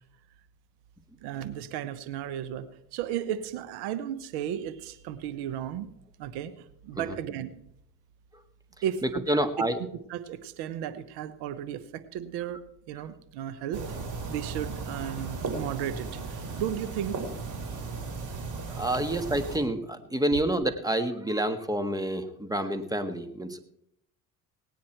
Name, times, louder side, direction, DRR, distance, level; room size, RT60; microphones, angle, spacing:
voice 1, 1.2-5.9 6.2-7.5 8.8-9.5 10.1-12.6 12.9-13.8 14.3-17.2, right 10 dB, 85° right, 13 dB, 1.0 m, -34 dB
voice 2, 9.0-9.8 18.7-23.6, right 1 dB, 10° right, 9 dB, 1.7 m, -28 dB
sound 1, 13.7-19.6, right 4 dB, 50° right, 4.2 m, -36 dB
18.5 x 9.6 x 4.5 m, 0.74 s
supercardioid pair, 70°, 39 cm